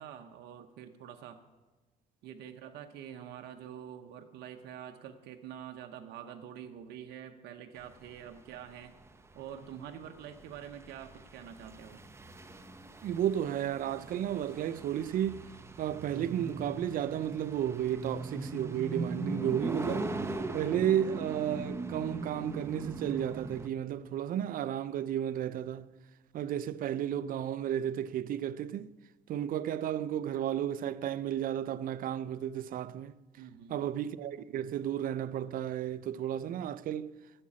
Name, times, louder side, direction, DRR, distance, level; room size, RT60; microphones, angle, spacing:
voice 1, 0.0-1.4 2.2-8.9 9.3-12.0 33.4-33.8, right 9 dB, 75° right, 0.9 m, -46 dB
sound 1, 7.8-23.7, right 2 dB, 15° right, 0.8 m, -40 dB
voice 2, 13.0-15.4 15.8-20.1 20.5-25.9 26.3-28.9 29.3-33.1 33.7-37.1, right 10 dB, 55° right, 0.5 m, -33 dB
11.5 x 7.5 x 8.7 m
cardioid pair, 110°, 17 cm